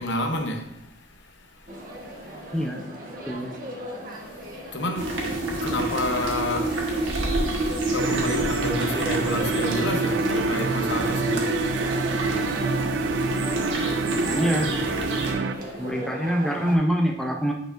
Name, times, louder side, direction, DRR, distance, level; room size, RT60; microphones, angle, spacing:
voice 1, 0.0-2.6 4.1-14.2 15.5-15.9, left 1 dB, 75° left, 0.9 m, -32 dB
sound 1, 1.7-16.7, equal, 45° right, 1.1 m, -38 dB
sound 2, 5.0-15.3, right 2 dB, 90° right, 1.3 m, -27 dB
sound 3, 8.0-15.5, right 5 dB, 70° right, 0.3 m, -29 dB
voice 2, 14.1-14.7 15.8-17.5, equal, 5° left, 0.6 m, -25 dB
9.0 x 5.0 x 2.5 m
head